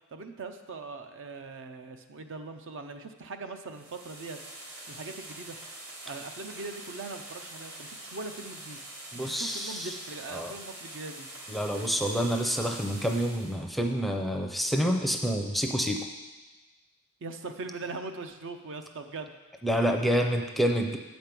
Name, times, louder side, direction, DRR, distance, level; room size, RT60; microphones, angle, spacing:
voice 1, 0.1-4.4 4.9-5.6 6.1-8.8 9.2-11.3 17.2-19.4, right 3 dB, 60° right, 7 dB, 0.6 m, -41 dB
sound 1, 3.7-13.6, right 1 dB, 80° right, 2.0 m, -45 dB
voice 2, 9.1-9.9 10.3-10.5 11.5-16.0 19.6-21.0, equal, ahead, 3 dB, 0.5 m, -28 dB
8.2 x 5.2 x 6.0 m, 1.2 s
head